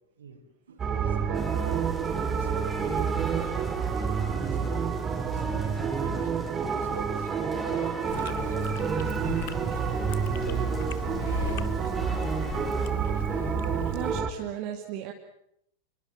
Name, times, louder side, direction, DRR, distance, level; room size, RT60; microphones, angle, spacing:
voice 1, 0.2-4.8 5.1-11.3, right 5 dB, 65° right, 4 dB, 5.0 m, -46 dB
sound 1, 0.8-14.3, right 6 dB, 20° right, 2.8 m, -28 dB
sound 2, 1.3-12.9, equal, 10° left, 5.7 m, -46 dB
Chewing mastication, 8.1-14.2, left 16 dB, 50° left, 1.0 m, -39 dB
voice 2, 13.9-15.1, right 11 dB, 40° right, 3 dB, 2.4 m, -35 dB
27.5 x 22.5 x 7.5 m, 0.75 s
figure-of-eight pair, 90°, 0 cm